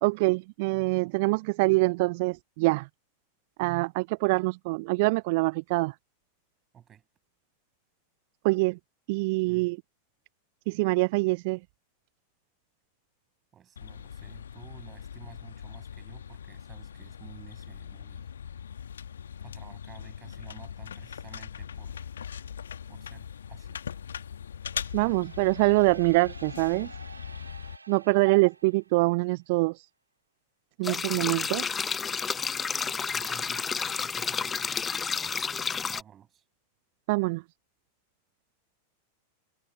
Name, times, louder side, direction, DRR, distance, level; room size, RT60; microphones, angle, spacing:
voice 1, 0.0-2.9 3.6-5.9 8.4-8.8 9.1-9.8 10.7-11.6 24.9-26.9 27.9-29.9 30.8-31.6 37.1-37.4, right 26 dB, 50° right, 0.4 m, -25 dB
voice 2, 6.7-7.0 9.4-9.7 13.5-18.3 19.4-22.1 22.9-23.8 31.1-31.5 33.1-33.7 34.0-34.7 35.9-36.4, right 9 dB, 25° right, 8.0 m, -52 dB
sound 1, 13.8-27.8, left 8 dB, 65° left, 1.5 m, -41 dB
sound 2, 24.6-29.3, right 4 dB, 80° right, 2.3 m, -50 dB
sound 3, 30.8-36.0, left 6 dB, 20° left, 0.6 m, -31 dB
figure-of-eight pair, 90°, 0 cm